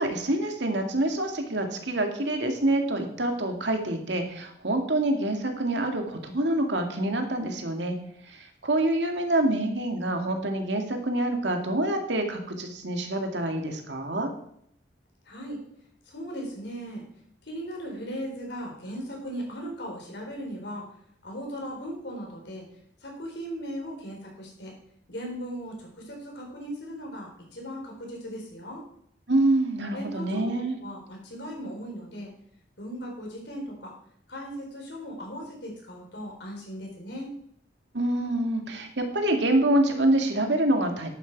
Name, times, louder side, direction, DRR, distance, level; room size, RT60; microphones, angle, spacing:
voice 1, 0.0-7.9 8.6-14.3 29.3-30.7 37.9-41.1, right 1 dB, 80° right, 4 dB, 2.1 m, -26 dB
voice 2, 15.3-15.6 16.1-17.0 17.5-20.9 21.2-22.7 23.0-24.7 25.1-28.8 29.9-30.5 30.8-32.3 32.8-33.9 34.3-37.3, equal, 75° left, 0 dB, 4.2 m, -37 dB
11.5 x 9.2 x 4.6 m, 0.70 s
head